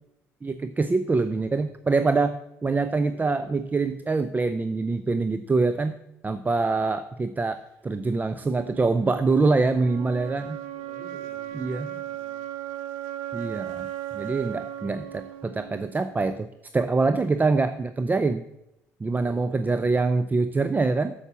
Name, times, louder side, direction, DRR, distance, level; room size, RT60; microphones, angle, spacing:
voice 1, 0.4-5.9 6.2-7.6 7.8-10.6 11.5-11.9 13.3-13.9 14.1-16.5 16.7-18.4 19.0-21.1, right 3 dB, 20° right, 11 dB, 0.6 m, -24 dB
sound 1, 8.4-16.4, right 12 dB, 75° right, 0.8 m, -37 dB
voice 2, 10.3-12.4 19.1-19.8, equal, 40° right, 1 dB, 4.2 m, -50 dB
8.1 x 7.2 x 7.0 m, 0.87 s
hypercardioid pair, 55°, 8 cm